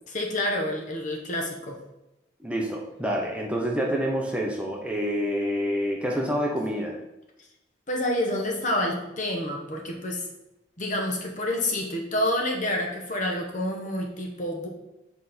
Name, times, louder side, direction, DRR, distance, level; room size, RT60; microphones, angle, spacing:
voice 1, 0.1-1.8 7.9-10.3 10.8-14.7, left 1 dB, 45° left, 1 dB, 1.1 m, -28 dB
voice 2, 2.4-7.0, equal, 5° right, -1 dB, 0.9 m, -27 dB
7.3 x 4.1 x 4.3 m, 0.93 s
head